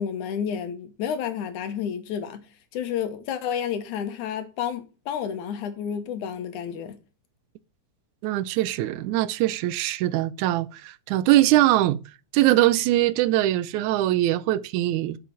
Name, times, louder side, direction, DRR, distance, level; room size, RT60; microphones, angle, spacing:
voice 1, 0.0-2.5 2.7-7.0, left 8 dB, 90° left, 2.6 m, -30 dB
voice 2, 8.2-12.0 12.3-15.2, right 15 dB, 85° right, 2.0 m, -22 dB
7.9 x 5.1 x 7.3 m
omnidirectional pair, 3.4 m